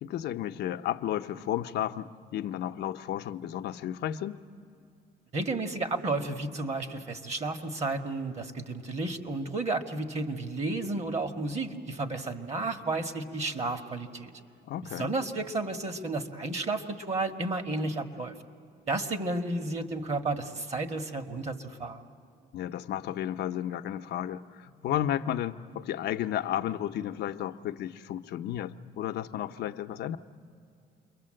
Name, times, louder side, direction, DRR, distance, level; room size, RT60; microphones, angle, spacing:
voice 1, 0.0-4.4 14.6-15.1 22.5-30.2, left 11 dB, 75° left, 7 dB, 0.8 m, -33 dB
voice 2, 5.3-14.3 15.0-18.3 18.9-22.0, right 2 dB, 40° right, 8 dB, 1.8 m, -32 dB
29.0 x 22.5 x 7.8 m, 2.5 s
cardioid pair, 100°, 18 cm